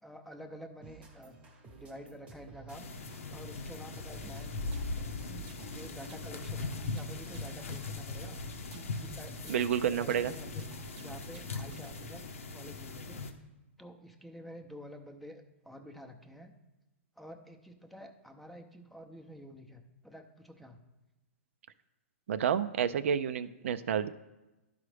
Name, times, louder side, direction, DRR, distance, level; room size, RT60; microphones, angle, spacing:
voice 1, 0.0-1.4 1.7-2.9 3.3-4.5 5.3-8.4 8.7-12.2 12.5-13.2 13.8-16.5 17.2-20.8, equal, ahead, 4 dB, 0.6 m, -49 dB
sound 1, 0.8-7.7, right 4 dB, 15° right, 0.9 m, -55 dB
sound 2, 2.7-13.3, left 3 dB, 90° left, 0.9 m, -40 dB
sound 3, 4.2-12.2, right 5 dB, 45° right, 0.8 m, -52 dB
voice 2, 9.5-10.3 22.3-24.1, right 8 dB, 70° right, 12 dB, 0.4 m, -29 dB
11.5 x 4.9 x 3.3 m, 1.1 s
hypercardioid pair, 145°, 7 cm